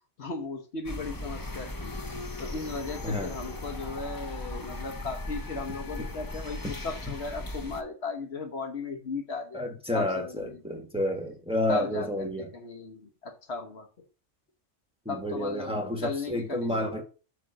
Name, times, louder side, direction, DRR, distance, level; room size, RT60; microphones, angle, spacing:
voice 1, 0.2-1.9 2.4-10.8 11.7-13.9 15.1-16.9, left 3 dB, 60° left, 1.3 m, -36 dB
sound 1, 0.8-7.8, left 2 dB, 20° left, 0.6 m, -38 dB
voice 2, 9.5-12.5 15.0-17.0, left 1 dB, 5° right, 1.3 m, -30 dB
8.5 x 3.3 x 6.4 m
omnidirectional pair, 1.2 m